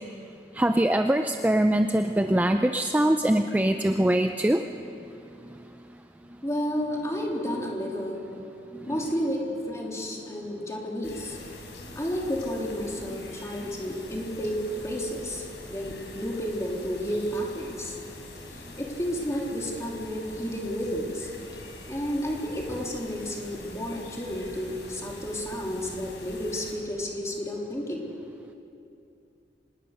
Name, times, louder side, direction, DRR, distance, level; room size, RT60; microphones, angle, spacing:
voice 1, 0.6-4.6 8.9-9.0, right 1 dB, 10° right, 6 dB, 0.5 m, -23 dB
voice 2, 6.4-8.2 8.9-11.4 11.9-14.6 14.8-15.4 15.7-18.0 18.5-21.3 21.9-28.1, equal, 15° left, -1 dB, 3.0 m, -31 dB
sound 1, 11.0-26.7, left 2 dB, 85° left, 4.3 m, -44 dB
25.5 x 20.0 x 6.5 m, 2.7 s
head